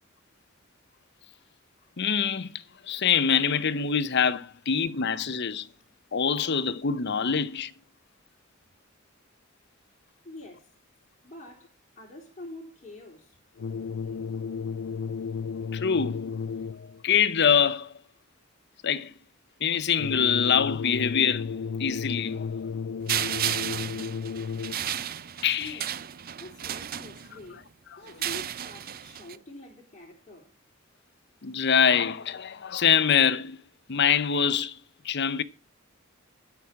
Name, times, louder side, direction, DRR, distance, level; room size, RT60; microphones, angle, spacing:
voice 1, 2.0-2.5 2.9-5.7 6.1-7.7 15.7-16.3 16.7-17.9 18.8-19.1 19.6-21.5 21.8-22.7 25.4-25.7 31.4-33.6 33.9-34.8 35.0-35.4, left 7 dB, 55° left, 0.8 m, -24 dB
voice 2, 10.2-10.7 11.2-13.4 25.6-25.9 26.4-27.7 28.0-30.5, left 1 dB, 35° left, 3.5 m, -45 dB
sound 1, 13.6-17.0 20.0-25.0, left 5 dB, 85° left, 0.4 m, -33 dB
sound 2, 23.1-27.5 28.1-29.4, right 10 dB, 45° right, 0.5 m, -33 dB
11.5 x 6.0 x 7.6 m
head